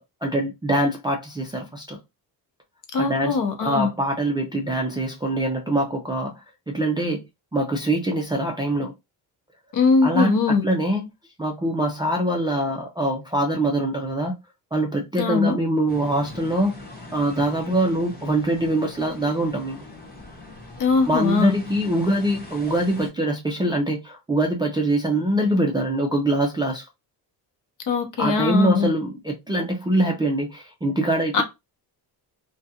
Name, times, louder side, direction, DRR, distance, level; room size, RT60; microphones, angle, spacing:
voice 1, 0.0-2.0 2.9-7.2 7.5-8.9 10.0-11.0 11.4-14.3 14.7-16.8 17.1-19.9 21.1-26.9 28.2-31.4, right 1 dB, 10° right, 0.4 m, -24 dB
voice 2, 2.9-3.9 9.7-10.7 15.2-15.6 20.8-21.6 27.9-28.9 31.3-31.4, left 4 dB, 50° left, 0.8 m, -21 dB
sound 1, 15.9-23.1, left 2 dB, 25° left, 1.0 m, -42 dB
2.4 x 2.2 x 2.8 m
cardioid pair, 120°, 41 cm